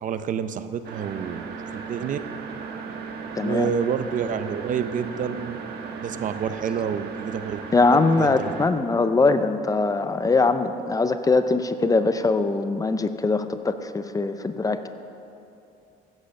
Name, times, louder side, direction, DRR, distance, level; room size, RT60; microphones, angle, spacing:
voice 1, 0.0-2.2 3.4-5.6 6.0-7.6 8.2-8.5, right 7 dB, 50° right, 11 dB, 0.6 m, -28 dB
sound 1, 0.8-8.7, right 5 dB, 70° right, 1.4 m, -36 dB
voice 2, 7.7-14.9, left 3 dB, 20° left, 10 dB, 0.6 m, -22 dB
15.5 x 7.9 x 6.5 m, 2.8 s
cardioid pair, 110°, 17 cm